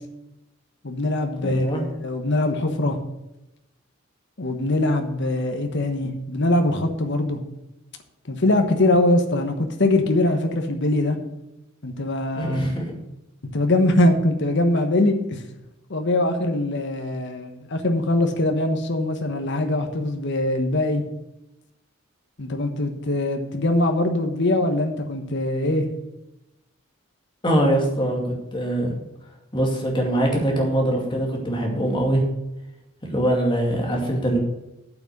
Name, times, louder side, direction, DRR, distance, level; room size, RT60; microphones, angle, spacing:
voice 1, 0.8-1.6 2.0-3.0 4.4-7.4 8.3-11.2 11.8-12.7 13.5-15.4 15.9-21.0 22.4-25.9, left 1 dB, 60° left, 5 dB, 1.2 m, -22 dB
voice 2, 1.4-1.8 12.3-12.9 27.4-29.0 29.5-32.2 33.1-34.4, right 1 dB, 25° left, 0 dB, 2.3 m, -23 dB
8.0 x 6.1 x 8.0 m, 0.91 s
head